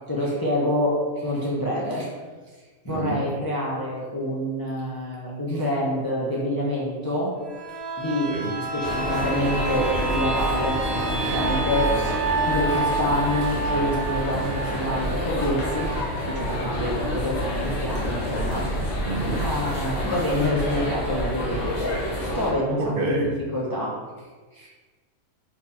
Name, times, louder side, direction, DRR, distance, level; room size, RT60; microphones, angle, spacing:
voice 1, 0.1-2.1 2.8-7.3 8.0-11.9 12.4-15.9 16.2-18.8 19.4-23.9 24.5-24.7, left 1 dB, 25° left, -5 dB, 0.5 m, -27 dB
voice 2, 2.9-3.2 8.3-8.5 19.0-19.5 22.8-23.4, right 2 dB, 65° right, 0 dB, 0.6 m, -28 dB
sound 1, 7.4-17.0 17.4-17.5, right 3 dB, 90° right, 1.3 m, -29 dB
sound 2, 8.8-22.5, equal, 65° left, 1.2 m, -28 dB
4.5 x 3.9 x 2.7 m, 1.4 s
omnidirectional pair, 1.5 m